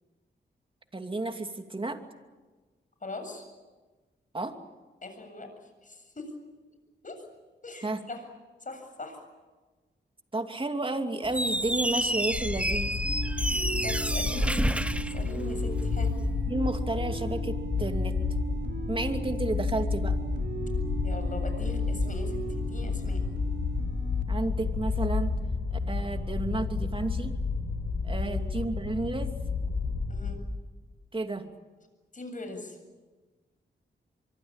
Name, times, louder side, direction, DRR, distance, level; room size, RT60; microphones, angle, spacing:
voice 1, 0.9-2.0 4.3-4.6 7.8-8.0 10.3-12.9 16.5-18.2 18.9-20.2 24.3-25.3 25.9-27.3 28.0-29.4 31.1-31.5, right 2 dB, 25° right, 6 dB, 2.7 m, -32 dB
voice 2, 3.0-3.5 5.0-5.5 5.8-6.3 7.0-7.2 7.6-8.2 8.6-9.2 13.4-16.1 21.0-23.2 28.2-28.5 30.1-30.4 32.1-32.8, left 2 dB, 40° left, 6 dB, 7.8 m, -41 dB
Squeak, 11.2-15.9, right 1 dB, 5° right, 0.9 m, -29 dB
sound 1, 12.3-30.3, left 4 dB, 80° left, 7.4 m, -31 dB
sound 2, 13.0-24.2, right 6 dB, 60° right, 3.9 m, -40 dB
24.5 x 24.0 x 8.9 m, 1.3 s
cardioid pair, 65°, 20 cm